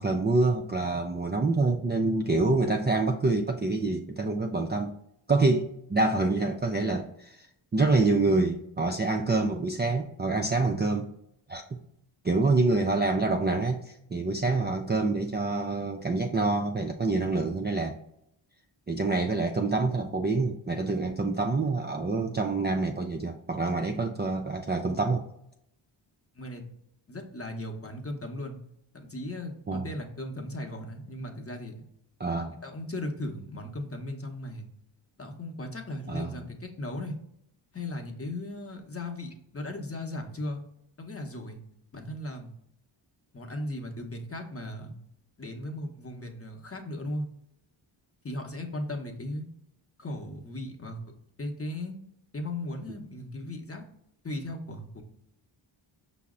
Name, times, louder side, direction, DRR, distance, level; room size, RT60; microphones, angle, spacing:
voice 1, 0.0-5.0 5.3-7.5 7.7-11.1 11.5-11.8 12.2-18.0 18.9-25.2 29.7-29.9 32.2-32.6 36.1-36.4, right 3 dB, 25° right, 3 dB, 0.3 m, -26 dB
voice 2, 27.1-28.6 28.9-31.8 32.6-34.7 35.2-37.2 37.7-40.6 41.0-41.6 41.9-42.5 43.3-44.9 45.4-47.3 48.2-49.4 50.0-51.0 51.4-52.0 52.3-53.8 54.2-55.0, left 1 dB, 30° left, 3 dB, 0.8 m, -37 dB
5.5 x 2.1 x 3.6 m, 0.75 s
cardioid pair, 55°, 50 cm